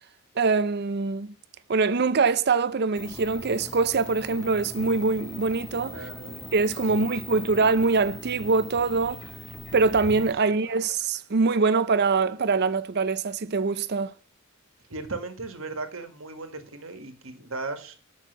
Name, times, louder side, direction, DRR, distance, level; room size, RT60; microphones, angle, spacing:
voice 1, 0.4-1.3 1.7-6.0 6.5-9.2 9.7-14.1, right 4 dB, 50° right, 0.6 m, -23 dB
sound 1, 2.9-10.3, left 1 dB, 5° left, 0.9 m, -41 dB
voice 2, 5.9-6.5 7.0-7.1 10.5-10.6 14.9-17.9, right 3 dB, 70° right, 1.8 m, -37 dB
sound 2, 8.7-11.3 11.9-12.0, left 3 dB, 85° left, 0.7 m, -45 dB
8.1 x 6.5 x 6.7 m
head